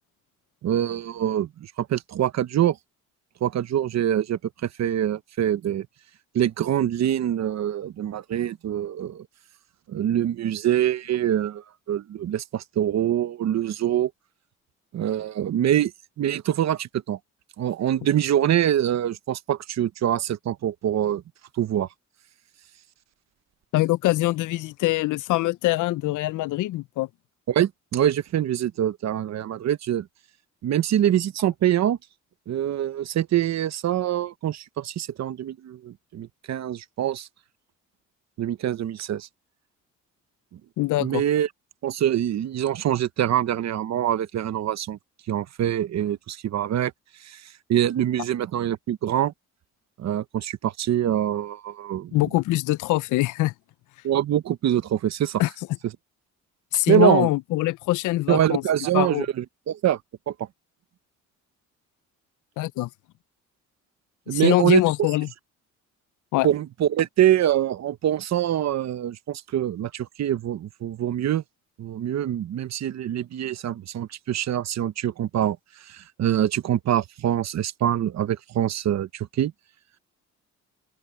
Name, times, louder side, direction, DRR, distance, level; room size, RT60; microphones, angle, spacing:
voice 1, 0.6-2.8 3.4-5.9 6.3-9.3 9.9-14.1 14.9-15.9 16.2-17.2 17.6-21.2 21.6-21.9 27.5-30.1 30.6-32.0 32.5-37.3 38.4-39.3 40.5-40.6 41.0-41.5 41.8-45.0 45.3-46.9 47.2-49.3 50.0-52.2 54.0-55.4 56.9-57.3 58.3-60.0 60.3-60.5 64.3-64.8 66.4-71.4 71.8-79.5, right 11 dB, 60° right, 1.0 m, -24 dB
voice 2, 23.7-27.1 40.8-41.2 52.1-53.5 55.4-55.5 56.7-58.6 58.9-59.3 62.6-62.9 64.3-65.3 66.3-66.5, left 17 dB, 80° left, 0.6 m, -23 dB
open air
cardioid pair, 90°, 30 cm